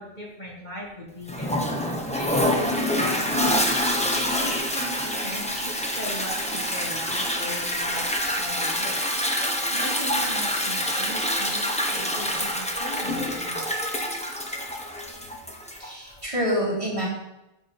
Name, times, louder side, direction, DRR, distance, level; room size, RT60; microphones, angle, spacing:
voice 1, 0.0-1.5 2.1-3.5 4.1-4.9 5.2-9.0 9.7-13.7, equal, 45° left, -3 dB, 2.1 m, -38 dB
Toilet flush, 1.3-15.9, equal, 5° left, 0.9 m, -26 dB
voice 2, 15.8-17.1, equal, 30° right, -7 dB, 3.3 m, -27 dB
8.4 x 4.4 x 6.8 m, 0.96 s
omnidirectional pair, 1.1 m